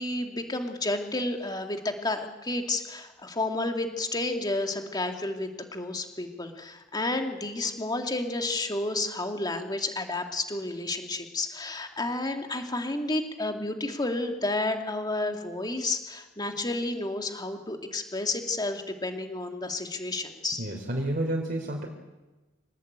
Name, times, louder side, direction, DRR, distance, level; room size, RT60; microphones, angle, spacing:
voice 1, 0.0-20.6, left 2 dB, 20° left, 4 dB, 2.5 m, -31 dB
voice 2, 20.6-21.9, right 1 dB, 45° right, 0 dB, 3.5 m, -30 dB
25.5 x 19.0 x 9.0 m, 1.1 s
head